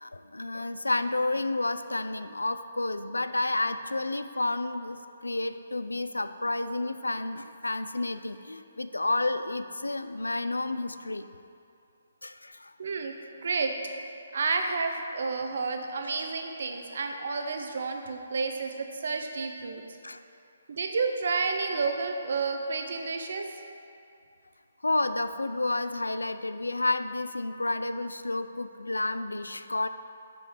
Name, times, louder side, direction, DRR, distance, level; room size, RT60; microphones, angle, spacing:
voice 1, 0.0-11.3 12.2-12.7 20.0-20.2 24.8-29.9, left 2 dB, 90° left, 11 dB, 0.3 m, -30 dB
voice 2, 12.8-13.1 13.4-13.7 14.3-19.8 20.7-23.5, right 4 dB, 60° right, 4 dB, 0.8 m, -30 dB
5.5 x 5.3 x 6.2 m, 2.5 s
figure-of-eight pair, 140°, 0 cm